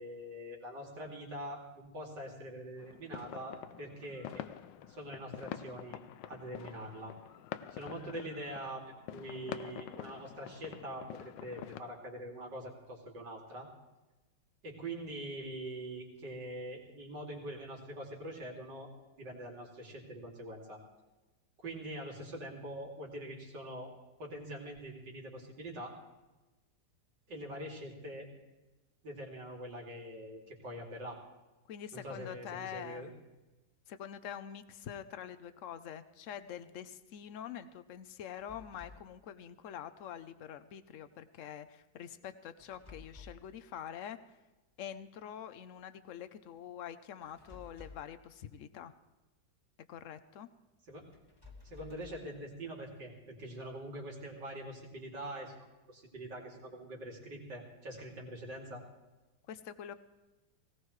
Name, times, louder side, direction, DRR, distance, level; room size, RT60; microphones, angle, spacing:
voice 1, 0.0-4.4 4.9-6.0 6.3-7.2 7.7-8.8 9.1-13.7 14.6-18.9 19.2-20.8 21.6-23.9 24.2-26.0 27.3-28.3 29.0-31.2 31.9-33.1 50.9-51.0 51.6-58.8, right 1 dB, 75° right, -1 dB, 3.3 m, -44 dB
sound 1, 2.8-11.8, left 11 dB, 90° left, 1.3 m, -46 dB
voice 2, 31.7-33.1 33.9-44.2 44.8-48.9 49.9-50.5 59.5-59.9, left 9 dB, 60° left, 12 dB, 0.9 m, -45 dB
sound 2, 38.4-39.1 42.6-43.6 47.2-48.2 51.1-52.4, left 4 dB, 15° left, 1.5 m, -54 dB
18.5 x 18.0 x 3.2 m, 1.1 s
omnidirectional pair, 1.9 m